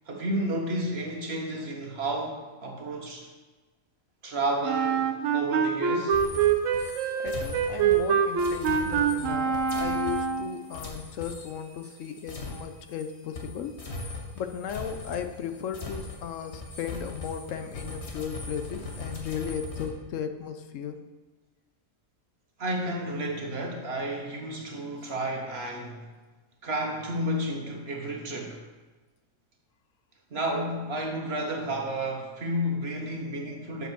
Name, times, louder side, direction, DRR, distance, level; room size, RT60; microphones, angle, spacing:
voice 1, 0.1-3.3 4.2-6.2 22.6-26.1 26.6-28.6 30.3-33.9, right 1 dB, 55° right, 1.2 m, -31 dB
Wind instrument woodwind instrument, 4.6-10.6, right 7 dB, 75° right, 1.1 m, -25 dB
sound 1, 6.1-13.1 13.3-19.9, left 2 dB, 60° left, 1.6 m, -40 dB
voice 2, 7.2-21.0, left 8 dB, 75° left, 1.0 m, -36 dB
7.7 x 5.4 x 6.1 m
omnidirectional pair, 1.3 m